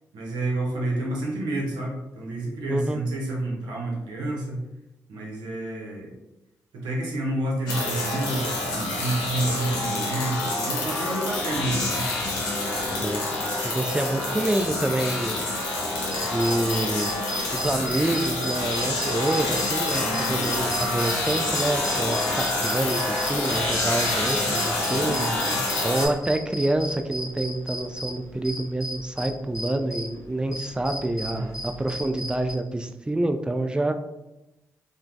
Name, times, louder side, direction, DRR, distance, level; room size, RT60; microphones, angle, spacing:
voice 1, 0.1-4.6 5.1-6.1 6.7-12.1 20.0-20.6 24.9-25.6 31.3-31.4, right 2 dB, 85° right, -2 dB, 0.7 m, -29 dB
voice 2, 2.7-3.0 12.8-13.2 13.6-15.4 16.2-17.1 17.5-25.2 25.8-33.9, right 1 dB, 10° right, 7 dB, 0.3 m, -27 dB
sound 1, 7.7-26.1, left 2 dB, 85° left, 0.7 m, -27 dB
sound 2, 16.0-30.1 30.5-32.5, equal, 50° left, 0.8 m, -35 dB
3.1 x 2.1 x 2.5 m, 0.95 s
supercardioid pair, 45°, 7 cm